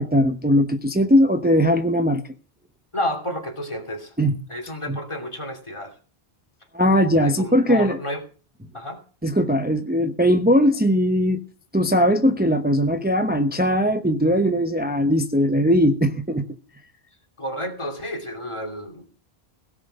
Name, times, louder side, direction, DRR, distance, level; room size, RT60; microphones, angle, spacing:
voice 1, 0.0-2.2 4.2-4.4 4.9-5.0 6.7-8.0 9.2-11.4 11.7-16.4, equal, 10° right, 0.9 m, -19 dB
voice 2, 2.9-4.1 4.5-5.9 7.1-8.2 8.7-9.0 17.4-19.1, left 1 dB, 30° left, 2.8 m, -31 dB
17.0 x 6.2 x 7.8 m
omnidirectional pair, 1.0 m